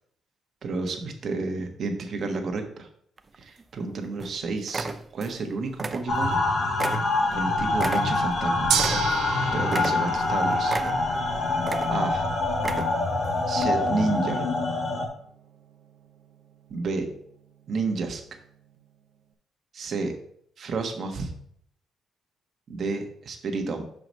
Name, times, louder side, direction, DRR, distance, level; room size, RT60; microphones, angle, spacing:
voice 1, 0.6-2.9 3.4-4.9 5.1-6.4 7.3-8.8 9.5-10.8 11.9-12.2 13.5-14.5 16.7-17.1 17.7-18.2 19.7-20.1 20.6-21.3 22.7-23.8, right 3 dB, 55° right, 4 dB, 1.3 m, -30 dB
sound 1, 3.2-3.8 4.2-4.4 4.7-5.4 5.7-6.4 6.8-9.3 9.7-10.3 10.7-11.2 11.6-12.2 12.5-13.1 13.6-13.7, right 3 dB, 30° right, 0.5 m, -33 dB
sound 2, 6.1-15.1, left 2 dB, 55° left, 1.6 m, -25 dB
Gong, 8.7-18.9, right 8 dB, 75° right, 0.9 m, -36 dB
5.8 x 4.8 x 5.3 m, 0.67 s
cardioid pair, 90°, 0 cm